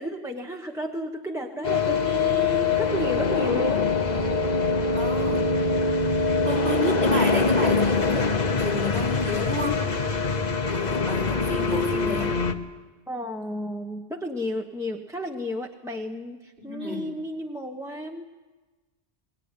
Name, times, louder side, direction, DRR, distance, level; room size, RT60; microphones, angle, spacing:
voice 1, 0.0-3.9 13.1-18.2, left 1 dB, 5° right, 1 dB, 1.1 m, -32 dB
sound 1, 1.6-12.5, left 4 dB, 40° left, 1.2 m, -24 dB
voice 2, 4.9-5.7 6.4-9.8 10.6-12.3 16.6-17.1, left 1 dB, 70° right, -2 dB, 6.4 m, -31 dB
21.5 x 19.0 x 9.8 m, 1.2 s
omnidirectional pair, 1.1 m